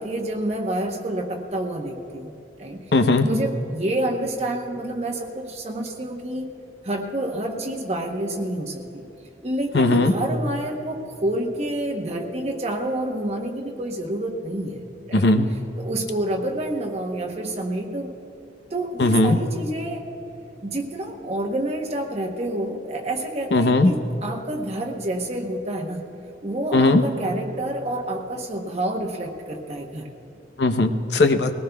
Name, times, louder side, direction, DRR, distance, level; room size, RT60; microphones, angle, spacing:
voice 1, 0.0-2.3 2.6-2.9 3.2-6.5 6.8-9.1 9.4-15.3 15.8-18.1 18.7-20.1 20.6-26.1 26.4-30.1, right 1 dB, 40° right, 1 dB, 0.9 m, -28 dB
voice 2, 2.9-3.3 9.7-10.1 15.1-15.5 19.0-19.4 23.5-23.9 26.7-27.0 30.6-31.5, left 2 dB, 65° left, 7 dB, 0.7 m, -18 dB
21.0 x 18.0 x 2.3 m, 2.8 s
head